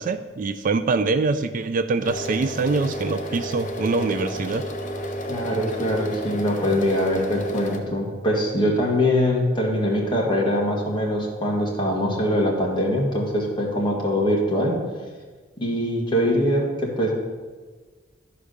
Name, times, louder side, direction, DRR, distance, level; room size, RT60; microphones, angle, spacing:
voice 1, 0.0-4.7, right 3 dB, 45° right, 11 dB, 0.4 m, -24 dB
sound 1, 2.0-7.8, equal, 45° left, 1.0 m, -31 dB
voice 2, 5.3-14.7 15.6-17.1, equal, 25° left, -2 dB, 2.1 m, -23 dB
11.5 x 4.9 x 6.6 m, 1.4 s
head